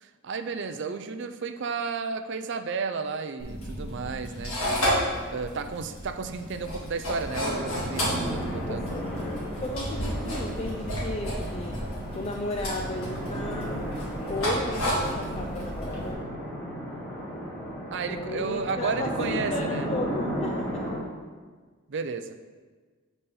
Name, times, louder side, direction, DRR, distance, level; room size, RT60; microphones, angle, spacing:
voice 1, 0.0-4.5 5.3-8.9 17.9-19.9 21.9-22.4, right 5 dB, 55° right, 9 dB, 0.5 m, -33 dB
sound 1, 3.4-16.1, equal, 85° left, 2.4 m, -32 dB
sound 2, 7.3-21.0, equal, 10° left, 2.5 m, -34 dB
voice 2, 8.7-9.2 9.6-11.8 12.1-13.9 14.3-16.2 18.1-20.9, left 2 dB, 30° left, 1 dB, 0.4 m, -34 dB
8.3 x 4.1 x 5.5 m, 1.4 s
head